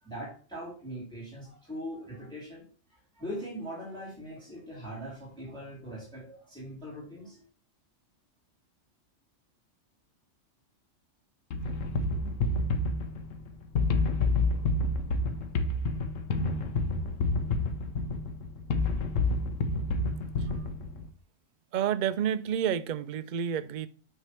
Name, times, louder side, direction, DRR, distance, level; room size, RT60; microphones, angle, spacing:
voice 1, 0.0-7.4, equal, 5° left, 3.1 m, -41 dB
sound 1, 11.5-21.1, left 2 dB, 90° left, 1.2 m, -29 dB
voice 2, 21.7-23.9, right 9 dB, 55° right, 0.5 m, -29 dB
9.0 x 3.5 x 4.3 m
omnidirectional pair, 1.3 m